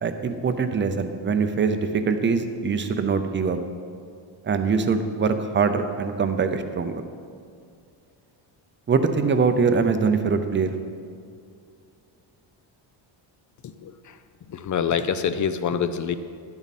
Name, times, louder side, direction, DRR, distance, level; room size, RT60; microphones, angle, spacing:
voice 1, 0.0-3.6 4.4-7.0 8.9-10.7, right 5 dB, 25° right, 8 dB, 0.5 m, -23 dB
voice 2, 13.8-14.2 14.5-16.2, left 7 dB, 40° left, 11 dB, 0.4 m, -26 dB
12.5 x 10.5 x 4.2 m, 2.3 s
cardioid pair, 170°, 48 cm